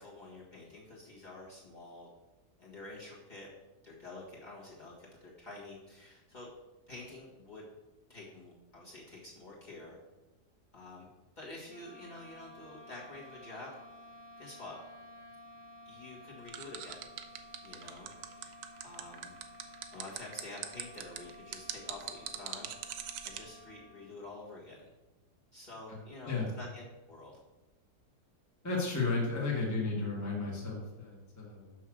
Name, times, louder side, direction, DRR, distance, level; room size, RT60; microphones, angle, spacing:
voice 1, 0.0-2.1 2.6-3.5 3.8-6.5 6.9-7.6 8.1-10.0 10.7-11.1 11.4-13.7 14.4-14.8 15.8-17.1 17.6-18.1 18.4-18.5 18.8-19.3 19.9-22.7 23.2-24.9 25.5-27.4, left 2 dB, 30° left, -6 dB, 1.6 m, -48 dB
sound 1, 11.6-24.4, left 1 dB, 50° left, 1.0 m, -53 dB
sound 2, 16.5-23.4, right 10 dB, 70° right, 1.1 m, -41 dB
voice 2, 28.6-31.8, left 3 dB, 10° left, -4 dB, 1.5 m, -33 dB
6.2 x 5.6 x 6.1 m, 1.1 s
omnidirectional pair, 1.8 m